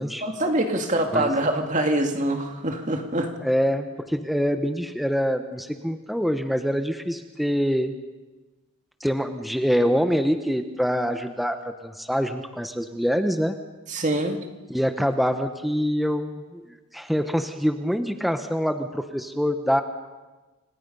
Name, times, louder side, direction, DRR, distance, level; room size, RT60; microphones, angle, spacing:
voice 1, 0.2-3.3 13.9-14.4, right 1 dB, 35° right, 4 dB, 2.3 m, -24 dB
voice 2, 3.4-7.9 9.0-13.6 14.7-19.8, equal, ahead, 7 dB, 1.0 m, -25 dB
29.5 x 25.5 x 5.5 m, 1.2 s
head